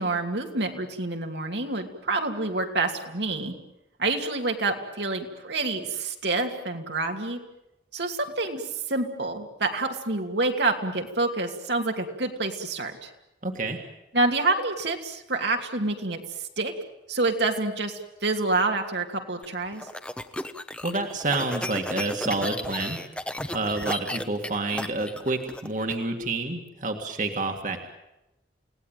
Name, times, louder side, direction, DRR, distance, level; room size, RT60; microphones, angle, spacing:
voice 1, 0.0-3.5 4.0-7.4 7.9-13.1 14.1-16.2 16.6-16.7 17.1-19.8, right 3 dB, 75° right, 3 dB, 2.7 m, -27 dB
voice 2, 13.4-13.8 20.8-23.0 23.5-27.8, right 2 dB, 45° right, 4 dB, 2.0 m, -28 dB
sound 1, 19.4-26.0, left 1 dB, 5° left, 0.9 m, -34 dB
29.5 x 18.0 x 9.2 m, 0.94 s
head